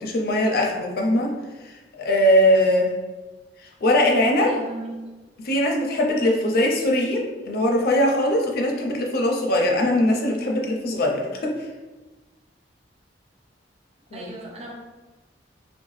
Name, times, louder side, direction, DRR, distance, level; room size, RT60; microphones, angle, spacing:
voice 1, 0.0-1.3 1.6-3.0 3.8-4.5 5.4-11.5 14.1-14.3, left 1 dB, 55° left, 0 dB, 0.5 m, -21 dB
voice 2, 4.4-5.1 14.1-14.7, right 2 dB, 35° right, -1 dB, 0.4 m, -36 dB
2.7 x 2.1 x 3.1 m, 1.2 s
head